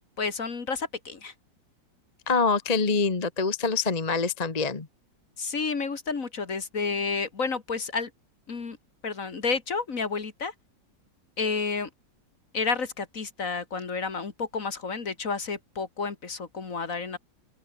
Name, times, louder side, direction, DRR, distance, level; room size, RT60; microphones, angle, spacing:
voice 1, 0.2-1.3 5.4-8.1 8.5-8.8 9.0-10.5 11.4-11.9 12.5-17.2, left 4 dB, 45° left, 2.3 m, -30 dB
voice 2, 2.3-4.9, left 4 dB, 25° left, 1.3 m, -25 dB
open air
omnidirectional pair, 2.0 m